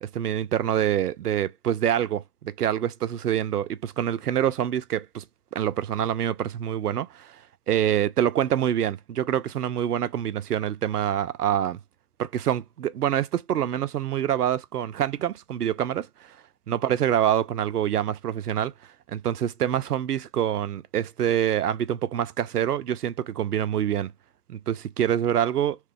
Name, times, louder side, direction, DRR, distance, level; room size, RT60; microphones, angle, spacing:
voice 1, 0.0-5.2 5.5-7.4 7.7-11.8 12.2-16.1 16.7-18.7 19.1-24.1 24.5-25.8, right 10 dB, 80° right, 0.5 m, -26 dB
2.9 x 2.2 x 3.5 m
figure-of-eight pair, 155°, 45 cm